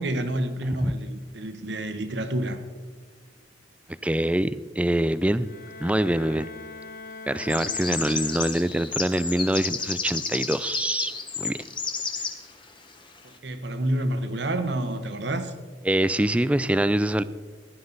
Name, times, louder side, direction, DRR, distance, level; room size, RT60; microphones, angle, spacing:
voice 1, 0.0-2.6 13.4-15.5, right 1 dB, 60° right, 8 dB, 1.2 m, -28 dB
voice 2, 4.0-5.5 5.8-6.5 7.3-11.1 11.4-11.6 15.8-17.2, right 1 dB, 5° right, 15 dB, 0.3 m, -24 dB
Bowed string instrument, 5.4-8.9, left 3 dB, 50° left, 0.6 m, -42 dB
sound 1, 7.4-12.3, left 5 dB, 25° left, 1.1 m, -31 dB
16.0 x 11.5 x 4.0 m, 1.5 s
head